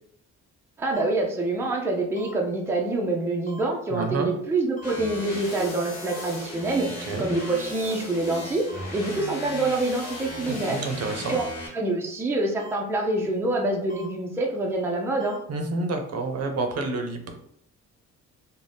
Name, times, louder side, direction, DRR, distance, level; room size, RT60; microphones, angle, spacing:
voice 1, 0.8-10.8 11.3-11.4 11.7-15.4, right 2 dB, 10° right, -1 dB, 0.5 m, -26 dB
sound 1, 0.9-1.0 2.2-2.3 3.5-3.6 4.8-4.9 6.1-6.2 7.4-7.5 8.7-8.8 10.0-10.1 11.3-11.4 12.6-12.7 13.9-14.1 15.2-15.4, equal, 25° left, 0.7 m, -44 dB
voice 2, 3.9-4.3 7.0-7.3 10.4-11.4 15.5-17.3, right 3 dB, 55° right, 4 dB, 0.6 m, -29 dB
sound 2, 4.8-11.7, left 2 dB, 90° left, 1.0 m, -36 dB
2.6 x 2.2 x 3.3 m, 0.70 s
cardioid pair, 90°, 30 cm